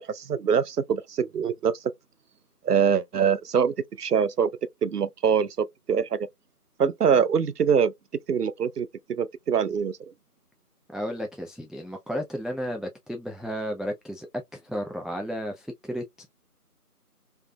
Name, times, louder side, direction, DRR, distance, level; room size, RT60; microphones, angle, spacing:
voice 1, 0.0-1.9 2.6-4.5 4.8-6.3 6.8-7.9 8.3-10.0, right 7 dB, 80° right, 0.6 m, -24 dB
voice 2, 10.9-14.3 14.5-16.3, equal, ahead, 0.3 m, -33 dB
3.2 x 2.2 x 2.6 m
figure-of-eight pair, 165°, 46 cm